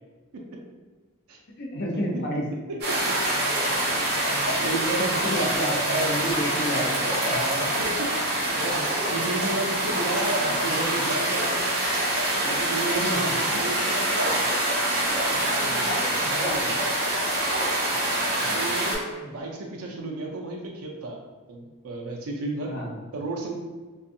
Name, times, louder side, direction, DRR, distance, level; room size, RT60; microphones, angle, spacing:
voice 1, 1.6-2.5 4.7-7.3 12.8-13.4 15.6-15.9 18.4-18.6 19.2-19.3 22.6-23.0, equal, 55° left, -1 dB, 0.5 m, -30 dB
sound 1, 2.8-19.0, right 1 dB, 50° right, 0.8 m, -25 dB
voice 2, 2.9-3.2 3.9-4.1 4.5-5.2 7.3-11.6 12.4-14.4 15.3-16.8 18.5-21.2 21.5-22.7 23.1-23.6, right 2 dB, 75° right, 0 dB, 0.4 m, -33 dB
2.5 x 2.3 x 2.6 m, 1.3 s
head